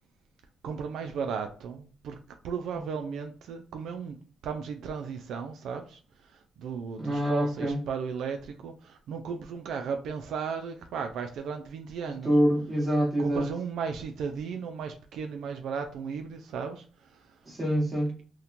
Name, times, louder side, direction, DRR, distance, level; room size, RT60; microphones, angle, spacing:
voice 1, 0.6-2.2 2.4-4.2 4.4-12.3 13.2-17.4, right 6 dB, 75° right, 5 dB, 0.3 m, -35 dB
voice 2, 7.0-7.8 12.0-13.5 17.5-18.1, equal, 25° right, -1 dB, 1.2 m, -26 dB
2.8 x 2.1 x 2.5 m, 0.41 s
cardioid pair, 90°, 0 cm